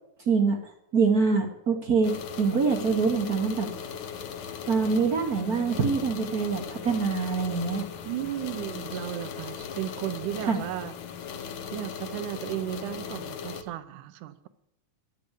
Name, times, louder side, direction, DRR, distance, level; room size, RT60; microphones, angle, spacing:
voice 1, 0.2-3.7 4.7-7.8 10.4-10.6, right 5 dB, 55° right, 4 dB, 1.0 m, -25 dB
sound 1, 2.0-13.6, left 7 dB, 70° left, 1.2 m, -38 dB
voice 2, 8.0-10.9 11.7-14.5, right 13 dB, 80° right, 13 dB, 2.3 m, -34 dB
11.5 x 10.5 x 8.2 m, 0.78 s
omnidirectional pair, 3.6 m